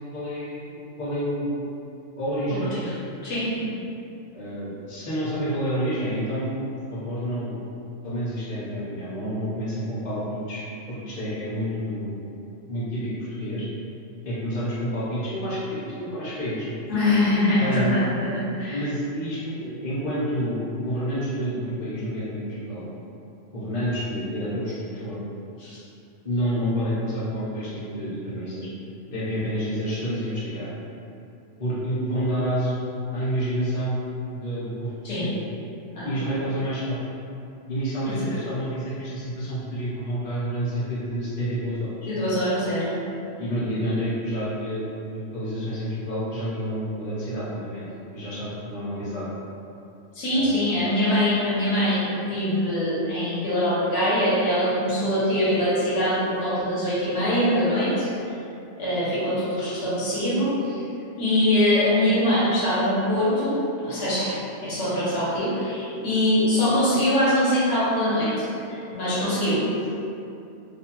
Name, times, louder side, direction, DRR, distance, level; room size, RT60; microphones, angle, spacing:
voice 1, 0.1-1.6 2.2-2.7 4.3-6.5 6.9-7.6 8.0-12.2 12.7-13.1 13.4-13.6 14.2-16.7 17.6-17.9 18.7-22.9 23.5-25.2 26.2-28.7 29.1-30.7 31.6-32.8 33.1-34.0 34.3-34.9 35.2-35.4 36.0-37.0 37.7-41.9 43.4-44.8 45.1-47.9 48.1-49.3 50.3-50.6, equal, 35° left, -10 dB, 0.7 m, -29 dB
voice 2, 2.5-2.9 3.2-3.6 16.9-18.8 25.6-25.8 35.0-35.4 35.9-36.3 38.0-38.2 42.1-42.9 50.1-58.1 58.8-60.8 61.2-69.7, left 1 dB, 70° left, -9 dB, 1.1 m, -23 dB
2.5 x 2.1 x 2.8 m, 2.7 s
omnidirectional pair, 1.3 m